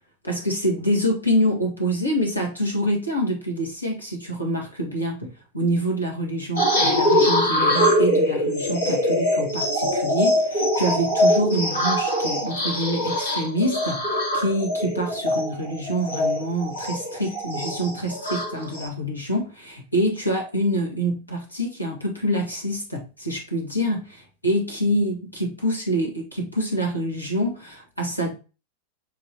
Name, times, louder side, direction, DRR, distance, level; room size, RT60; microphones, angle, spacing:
voice 1, 0.2-28.3, equal, 85° left, 1 dB, 1.6 m, -26 dB
sound 1, 6.6-18.9, equal, 70° left, 1.8 m, -23 dB
7.0 x 3.0 x 2.5 m, 0.32 s
figure-of-eight pair, 90°, 0 cm